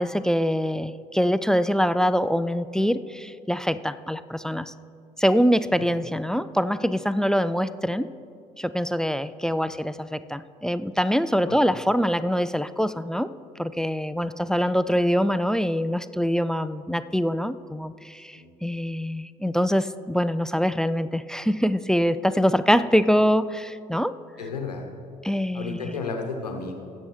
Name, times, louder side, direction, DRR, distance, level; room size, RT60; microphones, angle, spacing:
voice 1, 0.0-4.7 5.2-8.1 8.6-13.3 13.6-24.1 25.2-26.0, equal, 5° left, 15 dB, 0.3 m, -24 dB
voice 2, 11.3-11.6 14.1-14.2 18.3-18.5 24.4-24.9 25.5-26.7, left 4 dB, 85° left, 4 dB, 1.0 m, -33 dB
19.5 x 8.3 x 3.2 m, 2.5 s
figure-of-eight pair, 55°, 20 cm